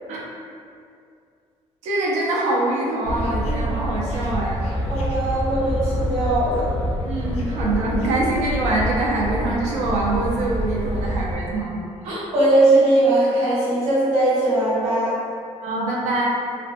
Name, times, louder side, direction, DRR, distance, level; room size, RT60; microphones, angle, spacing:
voice 1, 1.8-4.6 7.1-11.8 15.6-16.3, right 2 dB, 90° right, -4 dB, 0.5 m, -24 dB
sound 1, 3.0-11.4, equal, 70° left, 0.4 m, -26 dB
voice 2, 4.9-6.6 12.0-15.1, right 2 dB, 75° right, -9 dB, 1.1 m, -19 dB
2.4 x 2.1 x 2.5 m, 2.4 s
cardioid pair, 155°, 11 cm